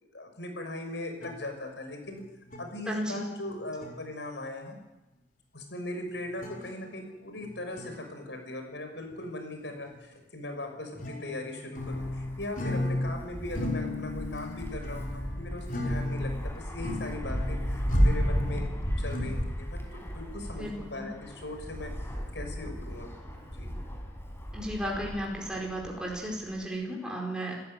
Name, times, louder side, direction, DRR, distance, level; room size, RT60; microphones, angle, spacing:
voice 1, 0.1-2.2 2.6-4.8 5.5-18.7 19.0-19.8 20.1-21.9 22.3-23.1 23.5-23.7, left 1 dB, 80° left, 5 dB, 6.3 m, -39 dB
sound 1, 1.2-1.4 2.1-2.2 2.5-2.7 3.5-3.6 3.8-4.0 6.2-6.9 7.4-8.1 9.1-9.2 9.9-10.0 10.7-13.2 13.5-19.4, left 2 dB, 50° left, 5.1 m, -35 dB
voice 2, 2.9-3.3 20.5-21.0 24.5-27.6, right 1 dB, 5° right, -2 dB, 4.6 m, -34 dB
Wind, 11.8-26.7, equal, 15° left, 4.3 m, -34 dB
28.5 x 14.5 x 9.4 m, 1.0 s
head